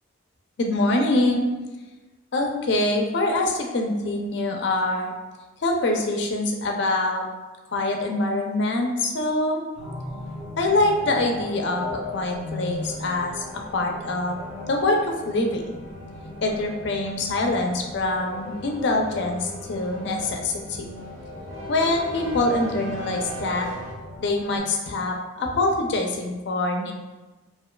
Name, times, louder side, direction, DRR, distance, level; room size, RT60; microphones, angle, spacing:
voice 1, 0.6-1.5 2.3-5.1 5.6-7.2 7.7-9.6 10.6-14.4 14.7-15.8 16.4-20.9 21.7-23.7 24.2-26.9, left 2 dB, 65° left, 2 dB, 0.5 m, -24 dB
sound 1, 9.7-24.6, left 2 dB, 5° right, 1.0 m, -39 dB
sound 2, 12.1-23.9, equal, 30° right, 1.0 m, -41 dB
4.6 x 2.4 x 2.3 m, 1.1 s
head